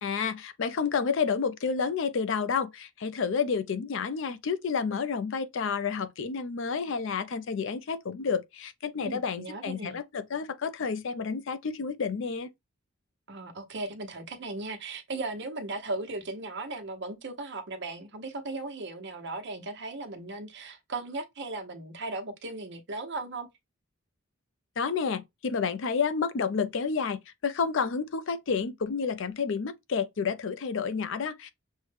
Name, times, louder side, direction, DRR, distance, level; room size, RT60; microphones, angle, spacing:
voice 1, 0.0-12.5 24.8-31.5, left 5 dB, 60° left, 0.4 m, -30 dB
voice 2, 9.0-10.0 13.3-23.5, right 2 dB, 55° right, 0.9 m, -37 dB
6.3 x 2.2 x 3.3 m
head